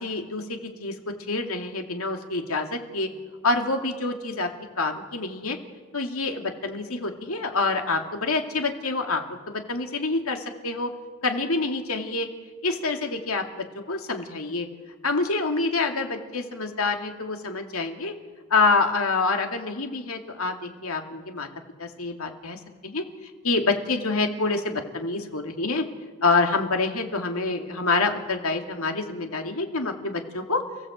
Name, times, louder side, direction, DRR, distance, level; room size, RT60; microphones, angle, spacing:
voice 1, 0.0-0.9 1.3-3.1 3.4-4.5 4.8-5.6 5.9-10.9 11.2-12.3 12.6-14.7 15.0-18.1 18.5-21.5 21.8-23.0 23.4-25.8 26.2-30.6, left 3 dB, 75° left, 4 dB, 2.5 m, -27 dB
30.0 x 17.0 x 8.1 m, 1.5 s
head